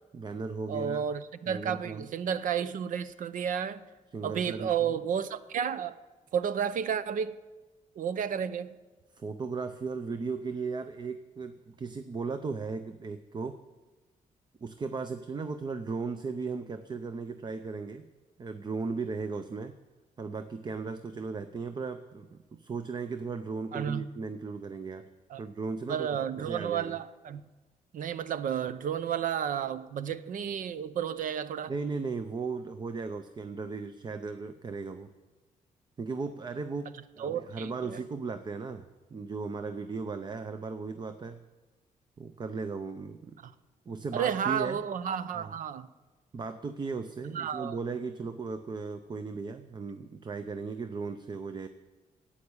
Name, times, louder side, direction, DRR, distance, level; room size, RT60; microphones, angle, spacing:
voice 1, 0.1-1.0 1.5-2.1 4.1-5.1 9.1-13.6 14.6-18.1 18.4-19.7 20.2-25.1 25.4-26.1 26.4-26.9 31.7-35.1 36.0-41.4 42.2-43.4 43.9-44.8 45.3-45.5 46.3-51.7, right 4 dB, 30° right, 0.6 m, -36 dB
voice 2, 0.7-3.8 4.2-6.0 6.3-7.4 8.0-8.7 23.7-24.1 25.3-25.4 25.9-27.4 27.9-31.7 37.2-38.0 43.4-43.5 44.1-45.9 47.3-47.8, right 8 dB, 70° right, 0.7 m, -32 dB
11.5 x 8.6 x 9.7 m
cardioid pair, 130°, 14 cm